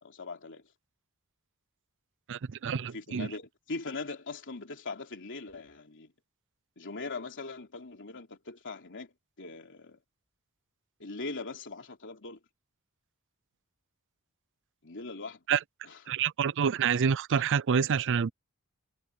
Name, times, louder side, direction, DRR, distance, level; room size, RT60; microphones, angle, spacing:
voice 1, 0.0-0.6 2.9-6.1 6.8-10.0 11.0-12.4 14.8-15.4 15.8-16.1 17.4-17.5, left 3 dB, 55° left, 3.4 m, -41 dB
voice 2, 2.3-3.3 15.5-15.6 16.1-18.3, right 7 dB, 55° right, 0.5 m, -27 dB
head